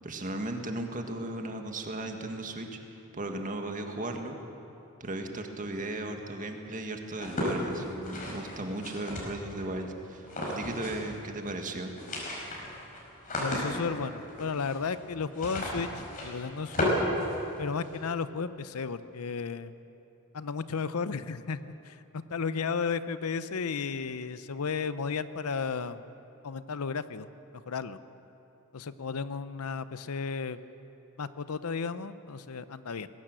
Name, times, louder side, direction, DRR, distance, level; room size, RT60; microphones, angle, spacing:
voice 1, 0.0-2.8 3.1-4.4 5.0-11.9, right 2 dB, 35° right, 4 dB, 1.8 m, -36 dB
sound 1, 7.1-9.6 10.2-11.2 11.4-11.5 11.8-18.0, left 1 dB, 40° left, 5.0 m, -34 dB
voice 2, 13.4-15.9 16.2-16.9 17.6-19.7 20.3-26.0 26.4-27.3 27.7-28.0 28.7-30.6 31.2-33.1, left 5 dB, 75° left, 14 dB, 0.7 m, -33 dB
20.0 x 17.0 x 7.7 m, 2.9 s
head